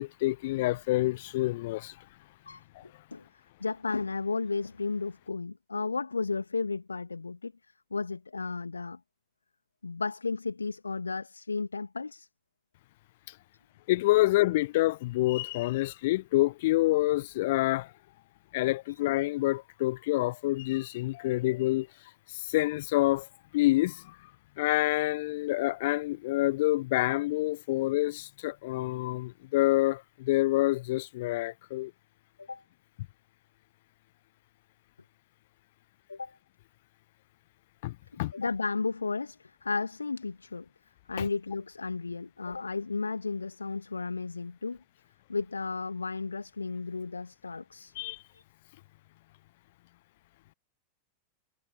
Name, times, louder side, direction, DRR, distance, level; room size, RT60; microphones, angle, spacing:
voice 1, 0.0-1.9 13.9-17.9 18.5-21.9 22.5-23.3 23.5-24.0 24.6-31.9 37.8-38.3 41.2-41.3 48.0-48.2, left 18 dB, 50° left, 0.5 m, -27 dB
voice 2, 3.6-7.5 7.9-9.0 9.8-12.3 18.9-19.0 32.4-32.6 36.1-36.4 38.1-40.7 41.1-44.8 45.3-47.9 48.3-48.4, left 4 dB, 80° left, 2.0 m, -33 dB
figure-of-eight pair, 90°, 0 cm